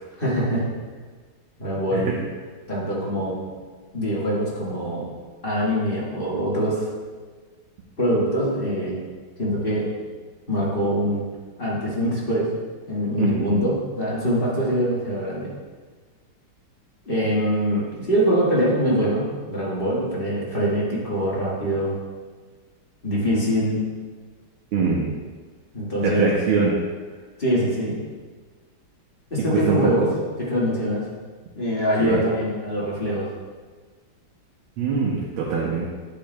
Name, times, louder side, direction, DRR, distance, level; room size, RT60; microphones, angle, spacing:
voice 1, 0.2-0.7 1.6-2.1 2.7-3.4 3.9-5.1 5.4-6.9 8.0-9.0 9.4-9.9 10.5-11.3 11.6-12.5 12.9-15.5 17.0-21.9 23.0-23.8 25.7-26.3 27.4-28.0 29.3-30.1 30.4-31.0 31.5-33.3, equal, 25° left, -7 dB, 1.8 m, -23 dB
voice 2, 13.2-13.6 24.7-25.1 26.0-26.8 29.5-30.1 32.0-32.2 34.8-35.9, right 5 dB, 80° right, -4 dB, 1.6 m, -23 dB
9.2 x 7.5 x 2.2 m, 1.4 s
omnidirectional pair, 2.3 m